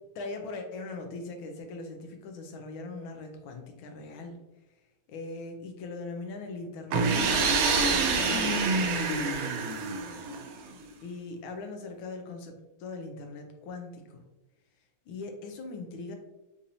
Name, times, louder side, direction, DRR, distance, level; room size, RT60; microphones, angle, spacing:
voice 1, 0.1-4.4 5.1-9.8 11.0-14.2 15.1-16.2, left 3 dB, 80° left, 5 dB, 1.4 m, -40 dB
sound 1, 6.9-10.7, right 4 dB, 85° right, 1.4 m, -26 dB
4.6 x 2.7 x 2.6 m, 1.0 s
omnidirectional pair, 2.2 m